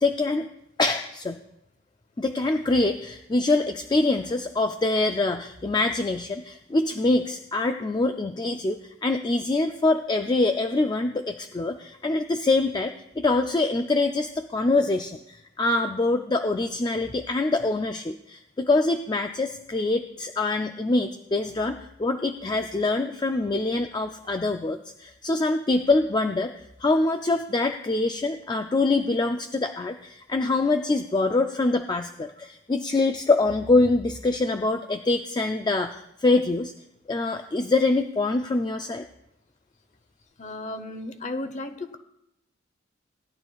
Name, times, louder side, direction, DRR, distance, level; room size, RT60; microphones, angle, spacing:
voice 1, 0.0-0.5 0.8-1.4 2.2-26.5 26.8-36.7 37.1-39.0, left 2 dB, 20° left, 6 dB, 0.4 m, -24 dB
voice 2, 40.4-42.0, left 2 dB, 35° left, 9 dB, 0.8 m, -34 dB
18.0 x 11.0 x 2.3 m, 0.82 s
head